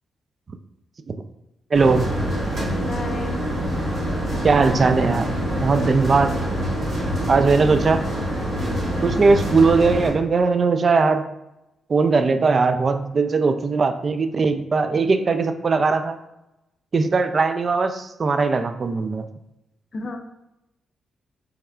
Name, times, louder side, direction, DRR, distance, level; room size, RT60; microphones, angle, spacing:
voice 1, 1.7-2.1 4.4-5.3 5.6-6.3 7.3-8.0 9.0-11.3 11.9-16.2 16.9-19.3, right 4 dB, 50° right, 8 dB, 0.3 m, -19 dB
sound 1, 1.7-10.1, equal, 65° right, 1.4 m, -25 dB
voice 2, 2.8-3.4 19.9-20.2, left 3 dB, 45° left, 5 dB, 0.5 m, -32 dB
3.4 x 3.3 x 2.2 m, 0.91 s
hypercardioid pair, 40°, 0 cm